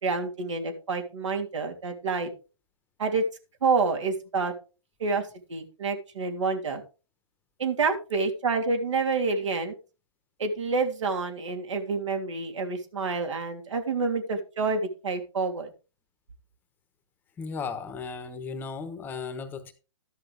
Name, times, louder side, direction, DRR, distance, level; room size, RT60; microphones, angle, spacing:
voice 1, 0.0-2.3 3.0-3.2 3.6-4.5 5.0-5.2 5.5-6.8 7.6-9.7 10.4-15.7, right 4 dB, 70° right, 3.2 m, -28 dB
voice 2, 17.4-19.7, left 5 dB, 10° left, 1.1 m, -35 dB
13.5 x 10.5 x 3.4 m
hypercardioid pair, 155°, 16 cm